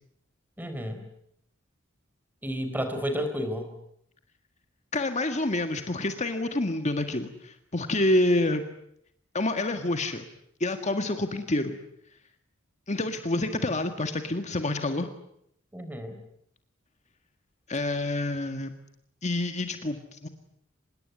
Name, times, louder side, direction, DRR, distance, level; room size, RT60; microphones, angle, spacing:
voice 1, 0.6-1.0 2.4-3.7 15.7-16.2, equal, 10° right, 8 dB, 4.2 m, -31 dB
voice 2, 4.9-8.6 9.3-10.2 10.6-11.8 12.9-15.1 17.7-18.7 19.2-20.3, left 2 dB, 35° left, 7 dB, 1.8 m, -27 dB
26.0 x 21.5 x 9.4 m, 0.72 s
head